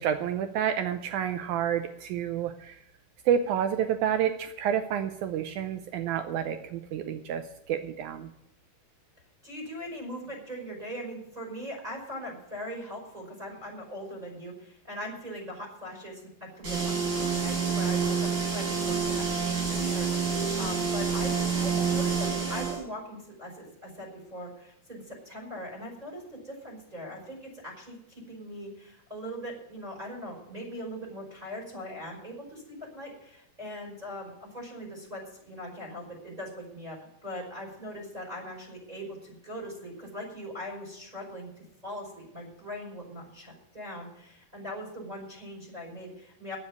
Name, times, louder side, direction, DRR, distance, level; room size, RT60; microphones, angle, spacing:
voice 1, 0.0-2.8 3.3-8.3, right 9 dB, 80° right, 8 dB, 1.7 m, -29 dB
voice 2, 9.4-46.6, equal, 10° right, -2 dB, 5.2 m, -40 dB
sound 1, 16.6-22.8, right 5 dB, 65° right, 6.9 m, -28 dB
9.9 x 8.6 x 9.5 m, 0.81 s
omnidirectional pair, 4.3 m